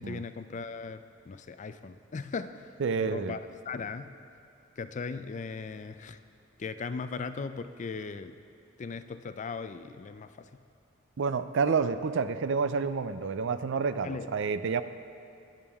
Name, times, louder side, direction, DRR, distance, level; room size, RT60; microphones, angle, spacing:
voice 1, 0.0-2.7 3.0-3.4 3.7-4.2 4.8-6.2 6.6-8.4 8.8-10.5 14.0-14.3, left 4 dB, 40° left, 11 dB, 0.4 m, -38 dB
voice 2, 2.8-3.4 11.2-14.8, right 5 dB, 65° right, 12 dB, 0.4 m, -29 dB
20.5 x 7.1 x 3.5 m, 2.7 s
head